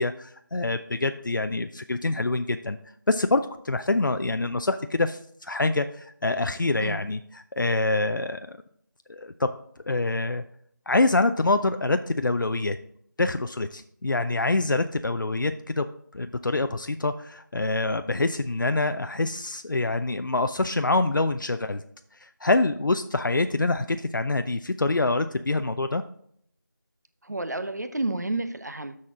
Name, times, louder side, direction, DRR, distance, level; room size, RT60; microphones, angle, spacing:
voice 1, 0.0-2.8 3.1-7.2 7.5-8.6 9.1-9.5 9.9-10.4 10.9-12.8 13.2-15.9 16.1-21.8 22.2-26.0, left 2 dB, 70° left, 9 dB, 0.5 m, -25 dB
voice 2, 27.2-29.0, right 2 dB, 55° right, 10 dB, 0.6 m, -30 dB
12.5 x 4.3 x 3.6 m, 0.67 s
figure-of-eight pair, 175°, 11 cm